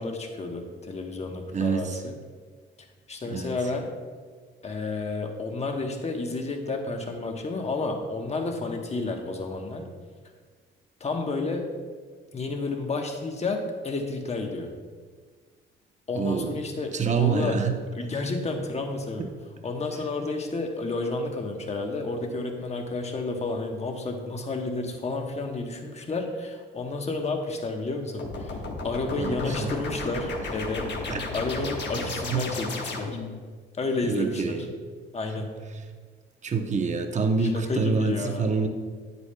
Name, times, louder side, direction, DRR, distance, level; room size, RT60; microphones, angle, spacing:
voice 1, 0.0-2.1 3.1-3.9 4.6-9.9 11.0-11.7 12.3-14.7 16.1-17.6 17.9-19.3 19.6-28.6 28.8-33.2 33.8-34.6 35.1-35.6 37.4-38.5, left 3 dB, 35° left, 3 dB, 1.1 m, -31 dB
voice 2, 1.5-2.0 3.2-3.5 16.2-16.6 16.9-17.9 19.2-19.3 29.2-29.7 31.1-31.7 31.9-32.6 34.0-34.7 35.4-35.5 36.4-38.7, right 5 dB, 35° right, 5 dB, 0.8 m, -27 dB
sound 1, 28.2-33.4, left 3 dB, 60° left, 1.2 m, -34 dB
9.5 x 8.1 x 2.3 m, 1.5 s
cardioid pair, 90°, 20 cm